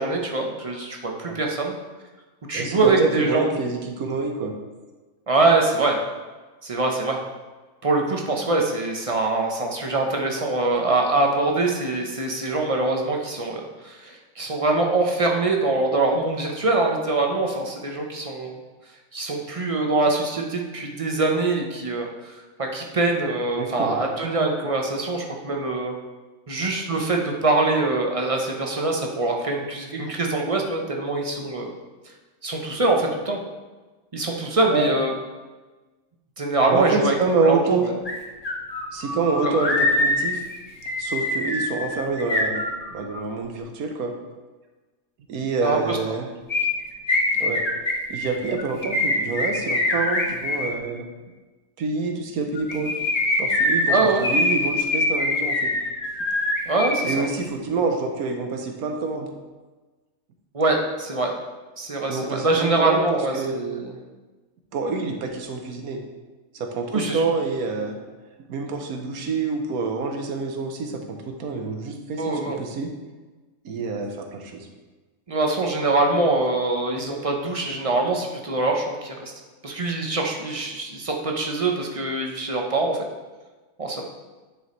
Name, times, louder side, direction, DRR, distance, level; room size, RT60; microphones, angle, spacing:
voice 1, 0.0-1.7 2.5-3.5 5.3-6.0 6.6-7.2 7.8-18.6 19.1-25.9 26.5-31.7 32.4-33.4 34.1-35.1 36.4-37.1 37.4-38.0 39.4-39.6 45.6-46.2 53.9-54.3 56.7-57.3 60.5-61.3 61.8-63.9 66.9-67.2 72.2-72.6 75.3-79.3 79.6-83.0 83.8-84.0, right 2 dB, 30° right, 1 dB, 0.6 m, -24 dB
voice 2, 2.5-4.6 23.5-24.0 34.7-34.9 36.7-37.8 38.9-40.4 41.0-42.6 42.9-44.1 45.3-46.3 47.3-47.6 48.1-51.1 51.8-52.9 53.4-55.7 57.0-59.3 62.1-63.0 63.3-63.6 64.7-66.0 66.5-68.0 68.5-72.9 73.6-74.6, right 4 dB, 85° right, 3 dB, 1.4 m, -27 dB
sound 1, 38.0-38.1 38.4-43.2 46.5-50.7 52.5-57.2 57.4-57.5, left 2 dB, 30° left, 1.0 m, -24 dB
9.5 x 5.0 x 3.1 m, 1.2 s
omnidirectional pair, 1.5 m